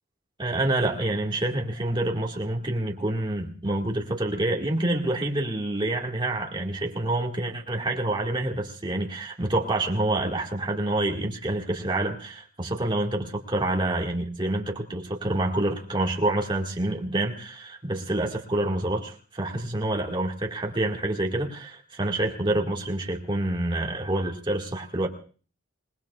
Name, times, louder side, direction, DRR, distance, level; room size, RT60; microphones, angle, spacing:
voice 1, 0.4-25.1, right 1 dB, 20° right, 0 dB, 1.8 m, -27 dB
27.5 x 19.5 x 2.4 m, 0.41 s
head